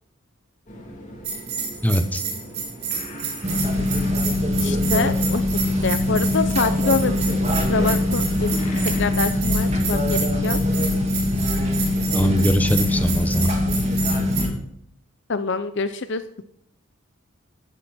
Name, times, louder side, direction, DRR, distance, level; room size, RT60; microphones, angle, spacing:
sound 1, 0.7-9.3, equal, 35° left, 3.1 m, -39 dB
Bell, 1.2-14.4, right 6 dB, 50° right, 3.7 m, -30 dB
voice 1, 1.8-2.2 12.1-13.6, equal, 5° left, 7 dB, 0.9 m, -21 dB
sound 2, 3.4-14.5, left 1 dB, 30° right, 2.6 m, -22 dB
voice 2, 4.6-5.4 5.8-7.4 7.7-8.6 9.0-10.6 15.3-16.2, left 4 dB, 55° left, 11 dB, 0.7 m, -25 dB
14.0 x 10.5 x 4.3 m, 0.72 s
head